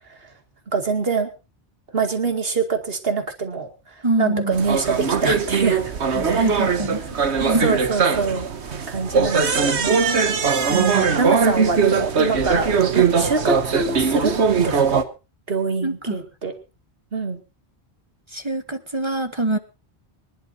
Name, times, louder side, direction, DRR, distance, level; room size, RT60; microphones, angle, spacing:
voice 1, 0.7-1.3 1.9-3.7 4.2-5.9 6.3-6.6 7.6-8.5 8.9-10.3 10.9-15.0 15.5-16.5 17.1-17.4, right 4 dB, 60° right, 6 dB, 2.5 m, -25 dB
voice 2, 4.0-4.6 6.1-7.0 7.4-7.8 10.7-11.1 15.8-16.2 18.3-19.6, right 2 dB, 25° right, 9 dB, 1.1 m, -24 dB
sound 1, 4.5-15.0, right 5 dB, 80° right, 1.5 m, -20 dB
25.0 x 11.5 x 2.7 m, 0.29 s
omnidirectional pair, 1.1 m